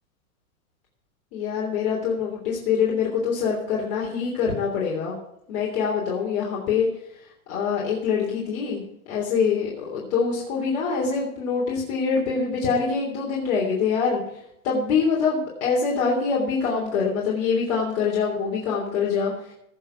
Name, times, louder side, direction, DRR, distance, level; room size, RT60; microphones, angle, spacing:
voice 1, 1.3-5.2 5.5-6.9 7.5-8.8 9.1-14.2 14.6-19.3, left 5 dB, 45° left, -3 dB, 3.3 m, -24 dB
17.5 x 6.5 x 5.8 m, 0.78 s
hypercardioid pair, 140°, 43 cm